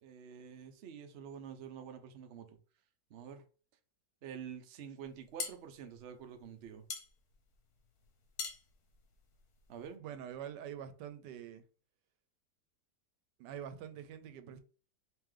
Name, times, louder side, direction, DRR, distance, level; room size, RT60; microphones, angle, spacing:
voice 1, 0.0-2.6 3.1-3.4 4.2-6.8 9.7-10.0, right 8 dB, 65° right, 0.6 m, -48 dB
sound 1, 5.0-10.0, left 6 dB, 65° left, 1.2 m, -45 dB
voice 2, 10.0-11.6 13.4-14.6, right 9 dB, 85° right, 1.2 m, -45 dB
3.8 x 3.0 x 3.2 m
omnidirectional pair, 1.8 m